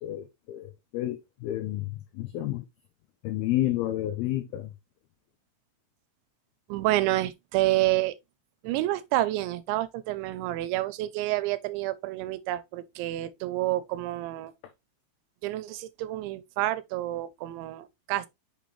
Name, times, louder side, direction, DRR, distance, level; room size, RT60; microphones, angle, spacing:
voice 1, 0.0-1.9 2.1-2.6 3.2-4.7, left 14 dB, 90° left, 2.1 m, -30 dB
voice 2, 6.7-8.1 8.6-14.5 15.4-18.3, right 16 dB, 85° right, 3.1 m, -29 dB
7.1 x 5.2 x 3.2 m
omnidirectional pair, 5.3 m